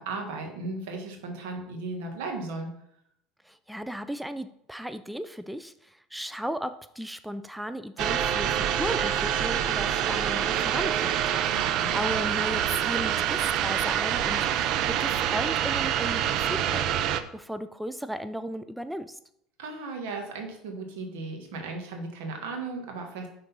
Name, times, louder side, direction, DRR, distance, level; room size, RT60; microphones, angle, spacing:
voice 1, 0.0-2.7 11.5-11.9 19.6-23.3, right 3 dB, 80° right, 3 dB, 1.5 m, -36 dB
voice 2, 3.5-11.5 11.9-14.7 15.0-17.0 17.3-19.2, equal, 5° right, 11 dB, 0.3 m, -35 dB
sound 1, 8.0-17.2, right 10 dB, 60° right, 0.5 m, -26 dB
5.9 x 3.9 x 5.4 m, 0.73 s
supercardioid pair, 95°, 0 cm